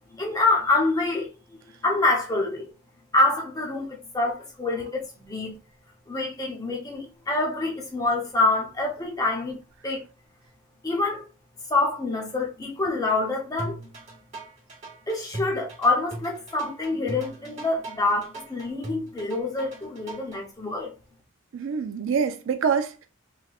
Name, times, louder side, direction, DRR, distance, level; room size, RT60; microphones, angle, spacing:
voice 1, 0.1-1.3 1.8-2.7 3.1-5.5 6.1-9.6 9.8-10.0 10.8-11.3 11.7-13.9 15.1-20.9, left 2 dB, 15° left, 0.7 m, -26 dB
sound 1, 13.6-20.4, right 2 dB, 30° right, 1.0 m, -39 dB
voice 2, 21.5-23.1, right 6 dB, 65° right, 0.3 m, -25 dB
3.2 x 2.9 x 2.3 m
head